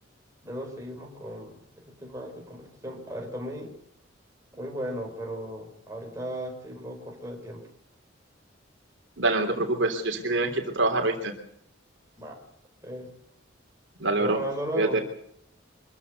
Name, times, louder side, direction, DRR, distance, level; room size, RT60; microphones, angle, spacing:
voice 1, 0.4-3.8 4.5-7.7 12.2-12.4 12.8-13.1 14.1-15.0, equal, 15° right, 1 dB, 5.2 m, -36 dB
voice 2, 9.2-11.3 14.0-14.4 14.8-15.0, right 2 dB, 70° right, 4 dB, 3.3 m, -25 dB
25.0 x 15.0 x 8.3 m, 0.71 s
head